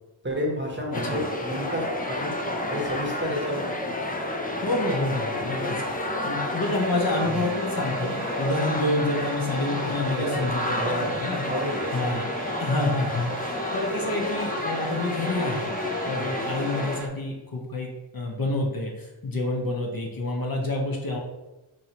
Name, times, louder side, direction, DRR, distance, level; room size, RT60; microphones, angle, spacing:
voice 1, 0.2-3.8 9.8-10.4 10.8-11.1 11.4-11.9 16.1-16.3, equal, 25° right, -1 dB, 0.9 m, -31 dB
sound 1, 0.9-17.0, left 1 dB, 20° left, 0.4 m, -30 dB
voice 2, 4.6-11.4 11.9-12.3 12.6-15.7 16.1-21.2, left 2 dB, 45° left, -1 dB, 0.7 m, -28 dB
sound 2, 6.6-17.1, right 3 dB, 40° right, 0.5 m, -40 dB
4.1 x 3.1 x 2.8 m, 1.0 s
wide cardioid pair, 85°, 48 cm